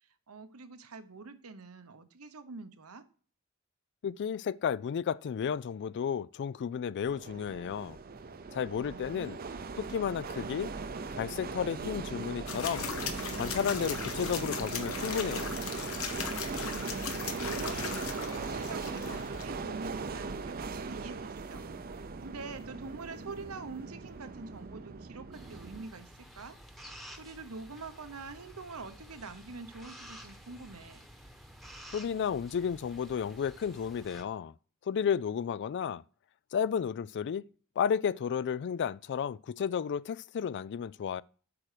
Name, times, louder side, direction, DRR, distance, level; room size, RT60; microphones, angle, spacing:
voice 1, 0.0-3.0 8.9-9.8 16.8-26.6 27.1-31.1, right 4 dB, 80° right, 1.0 m, -45 dB
voice 2, 4.0-8.0 8.5-9.4 9.8-10.7 11.1-12.9 13.3-15.5 31.9-34.5 34.9-36.0 36.5-37.4 37.8-41.2, left 7 dB, 55° left, 0.3 m, -32 dB
sound 1, 7.0-25.8, right 4 dB, 45° right, 0.6 m, -39 dB
sound 2, 12.5-19.4, left 6 dB, 70° left, 1.2 m, -38 dB
sound 3, 25.3-34.2, equal, ahead, 1.1 m, -51 dB
8.6 x 6.1 x 5.0 m
head